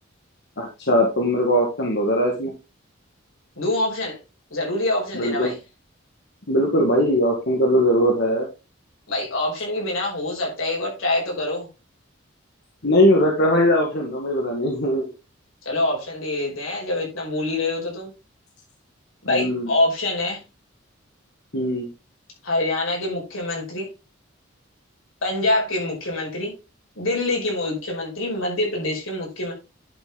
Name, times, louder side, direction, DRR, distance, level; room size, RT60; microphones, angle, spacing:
voice 1, 0.6-2.5 5.1-5.5 6.5-8.5 12.8-15.1 19.3-19.7 21.5-21.9, equal, 55° left, 1 dB, 2.0 m, -20 dB
voice 2, 3.6-4.2 4.5-5.6 9.1-11.7 15.6-18.1 19.2-20.4 22.4-23.9 25.2-26.5 27.0-29.5, left 2 dB, 85° left, -1 dB, 5.6 m, -25 dB
10.5 x 6.2 x 3.9 m, 0.29 s
head